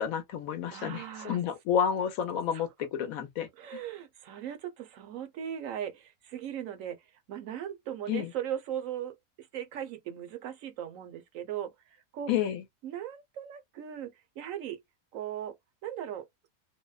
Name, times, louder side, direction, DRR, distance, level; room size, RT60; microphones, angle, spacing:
voice 1, 0.0-3.5 8.1-8.3 12.3-12.6, left 8 dB, 75° left, 1.1 m, -30 dB
voice 2, 0.7-1.4 2.5-2.7 3.6-7.0 7.3-11.7 12.1-12.3 12.8-14.8 15.1-15.5 15.8-16.3, right 10 dB, 70° right, 1.0 m, -38 dB
2.7 x 2.0 x 2.2 m
omnidirectional pair, 1.5 m